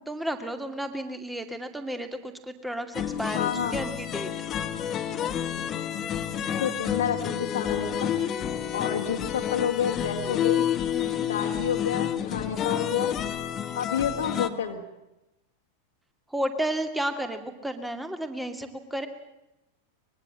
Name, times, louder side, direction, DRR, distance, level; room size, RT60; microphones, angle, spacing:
voice 1, 0.1-4.3 10.9-11.3 16.3-19.1, right 1 dB, 5° right, 8 dB, 2.4 m, -32 dB
sound 1, 2.9-14.5, left 9 dB, 30° left, 1.4 m, -29 dB
voice 2, 3.3-3.8 6.6-8.1 8.7-10.7 11.2-13.2 13.8-14.8, left 8 dB, 65° left, 1 dB, 1.8 m, -29 dB
24.0 x 21.5 x 7.6 m, 0.94 s
figure-of-eight pair, 90°, 0 cm